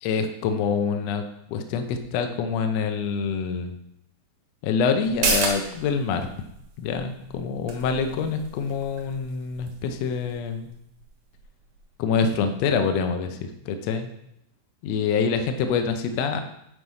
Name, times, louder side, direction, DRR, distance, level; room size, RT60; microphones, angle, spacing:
voice 1, 0.0-3.7 4.6-6.3 6.8-10.7 12.0-14.1 14.8-16.4, left 5 dB, 75° left, 7 dB, 1.6 m, -26 dB
sound 1, 5.0-12.2 12.5-12.6, right 4 dB, 85° right, 3.2 m, -33 dB
9.6 x 4.7 x 5.5 m, 0.78 s
omnidirectional pair, 4.0 m